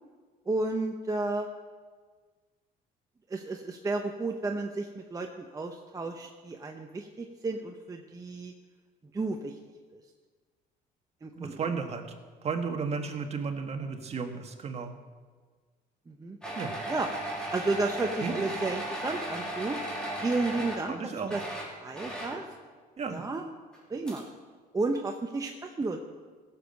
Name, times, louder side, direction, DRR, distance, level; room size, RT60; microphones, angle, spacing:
voice 1, 0.5-1.5 3.3-8.5 9.1-9.6 9.9-10.0 11.2-11.6 16.1-16.4 16.9-17.1 17.5-19.8 20.2-21.4 21.8-22.4 23.1-23.5 23.9-24.3 24.7-26.0, right 3 dB, 20° right, 3 dB, 0.8 m, -32 dB
voice 2, 11.3-12.1 12.4-14.9 16.6-16.8 18.2-18.3 20.9-21.3 23.0-23.2, right 5 dB, 40° right, 5 dB, 1.5 m, -33 dB
sound 1, 16.4-21.0 21.2-22.5 23.7-23.8 24.1-24.2, right 1 dB, 5° left, 3.1 m, -36 dB
16.0 x 7.2 x 6.5 m, 1.5 s
cardioid pair, 110°, 17 cm